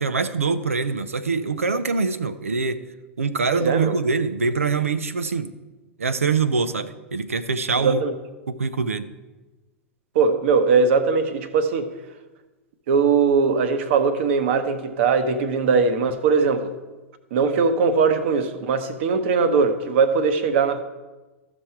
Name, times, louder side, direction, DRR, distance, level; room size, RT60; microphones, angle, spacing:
voice 1, 0.0-2.8 3.2-5.5 6.0-8.0 8.5-9.1, right 4 dB, 90° right, 11 dB, 0.6 m, -24 dB
voice 2, 3.5-4.0 7.8-8.1 10.1-11.9 12.9-16.7 17.3-20.8, right 5 dB, 60° right, 10 dB, 1.0 m, -20 dB
14.0 x 6.1 x 4.5 m, 1.2 s
hypercardioid pair, 95°, 7 cm